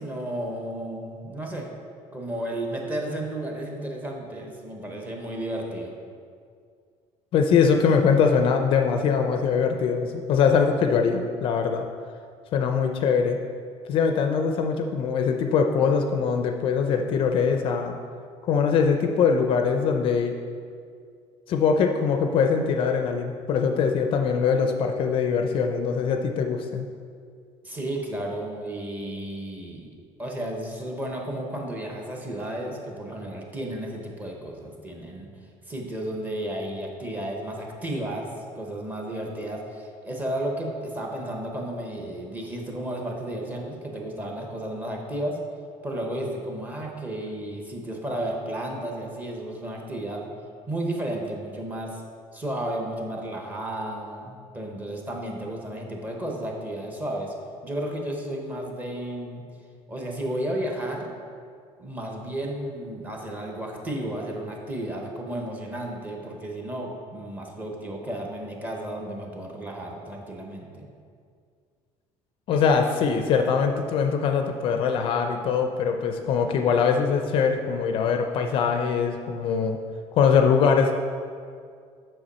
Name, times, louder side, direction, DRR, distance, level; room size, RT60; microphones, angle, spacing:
voice 1, 0.0-1.7 2.1-5.9 27.6-29.9 30.2-35.3 35.7-38.3 38.5-45.4 45.8-50.3 50.7-52.0 52.3-57.3 57.6-59.4 59.9-61.1 61.8-70.9, right 1 dB, 15° right, 0 dB, 0.9 m, -33 dB
voice 2, 7.3-11.9 12.5-13.4 13.9-18.0 18.5-20.3 21.5-26.9 72.5-79.8 80.1-80.9, left 6 dB, 45° left, 5 dB, 0.4 m, -22 dB
7.8 x 6.0 x 4.2 m, 2.2 s
cardioid pair, 175°, 13 cm